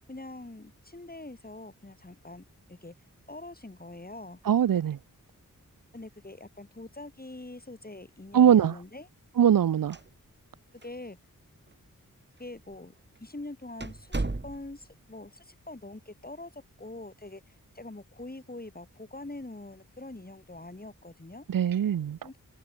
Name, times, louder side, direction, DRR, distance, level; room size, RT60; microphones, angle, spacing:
voice 1, 0.1-2.9 3.3-4.4 5.9-9.1 10.8-11.2 12.4-12.9 13.2-21.4 22.2-22.4, left 2 dB, 25° left, 6.7 m, -44 dB
voice 2, 4.5-5.0 8.3-8.7 9.4-10.0 21.5-22.2, right 9 dB, 85° right, 0.6 m, -21 dB
sound 1, 9.8-10.6 10.8-10.9 11.7-11.8 12.5-12.7 13.2-13.3 13.8-14.9, right 2 dB, 30° right, 6.8 m, -35 dB
wide cardioid pair, 85°, 33 cm